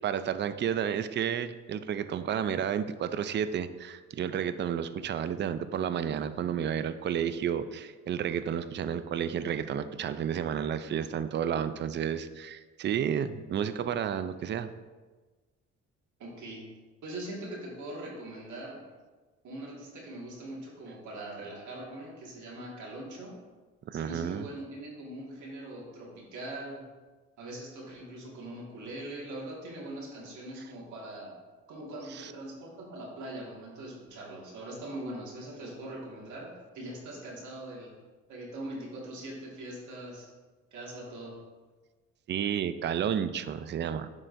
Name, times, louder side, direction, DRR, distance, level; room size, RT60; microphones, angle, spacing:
voice 1, 0.0-14.7 23.9-24.5 32.1-32.3 42.3-44.1, right 8 dB, 40° right, 12 dB, 0.4 m, -31 dB
voice 2, 16.2-16.6 17.0-18.8 19.4-23.4 23.9-26.8 27.4-31.3 31.7-37.9 38.3-40.3 40.7-41.4, right 1 dB, 75° right, -3 dB, 1.9 m, -41 dB
11.0 x 3.8 x 2.6 m, 1.3 s
cardioid pair, 90°, 30 cm